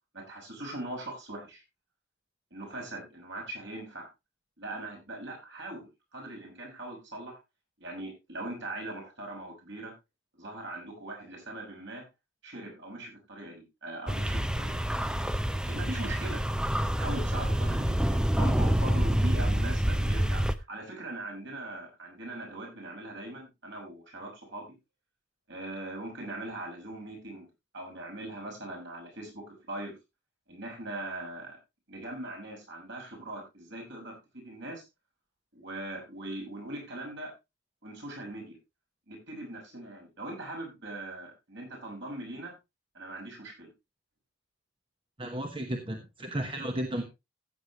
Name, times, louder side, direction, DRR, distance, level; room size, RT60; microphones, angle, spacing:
voice 1, 0.1-1.6 2.5-4.1 4.6-7.4 7.8-9.9 10.3-12.0 12.4-14.9 15.6-16.4 17.0-24.6 25.5-27.5 27.7-29.9 30.5-31.6 31.9-34.8 35.5-37.3 37.8-38.6 39.1-42.5 42.9-43.7, right 2 dB, 55° right, 0 dB, 6.4 m, -40 dB
sound 1, 14.1-20.6, equal, 5° right, 0.5 m, -27 dB
voice 2, 45.2-47.0, right 1 dB, 25° right, 4 dB, 1.1 m, -33 dB
15.0 x 8.1 x 3.0 m, 0.24 s
head